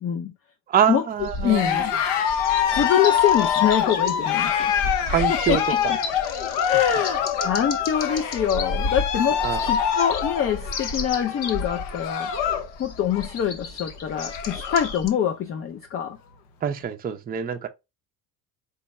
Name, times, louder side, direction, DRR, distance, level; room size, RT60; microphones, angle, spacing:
voice 1, 0.0-0.3 0.9-1.0 1.4-1.9 2.7-4.7 5.3-5.8 6.6-12.3 12.8-16.2, left 9 dB, 35° left, 0.4 m, -25 dB
voice 2, 0.7-1.9 5.1-5.6 9.4-9.7 16.6-17.7, right 8 dB, 25° right, 0.4 m, -24 dB
sound 1, 1.2-15.1, left 3 dB, 50° left, 0.9 m, -34 dB
Cheering, 1.4-12.7 13.0-13.4 13.8-13.9 14.1-14.9, left 8 dB, 85° left, 0.8 m, -25 dB
4.6 x 2.1 x 4.0 m
cardioid pair, 105°, 41 cm